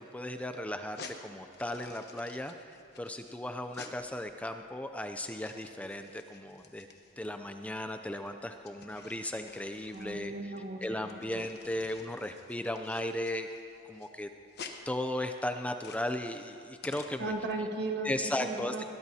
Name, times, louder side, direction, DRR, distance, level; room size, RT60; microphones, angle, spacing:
voice 1, 0.1-2.5 3.0-6.9 7.2-10.3 10.8-13.5 13.9-14.3 14.9-17.3 18.0-18.8, left 1 dB, 5° left, 7 dB, 0.4 m, -36 dB
sound 1, 0.8-17.5, left 5 dB, 55° left, 1.1 m, -51 dB
voice 2, 9.9-10.8 11.3-11.4 17.2-18.8, right 2 dB, 55° right, 2 dB, 1.6 m, -36 dB
21.5 x 18.0 x 2.8 m, 2.6 s
head